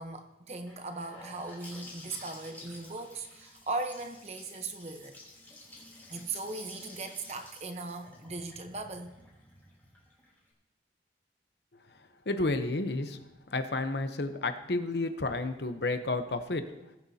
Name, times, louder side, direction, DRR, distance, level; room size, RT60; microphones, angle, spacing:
voice 1, 0.0-5.1 6.1-9.1, right 3 dB, 35° right, 7 dB, 1.0 m, -38 dB
Gurgling / Sink (filling or washing) / Bathtub (filling or washing), 0.7-10.5, left 2 dB, 10° left, 3.3 m, -51 dB
voice 2, 12.3-13.2 13.5-16.6, left 2 dB, 70° left, 8 dB, 0.9 m, -31 dB
19.5 x 9.2 x 2.9 m, 0.94 s
head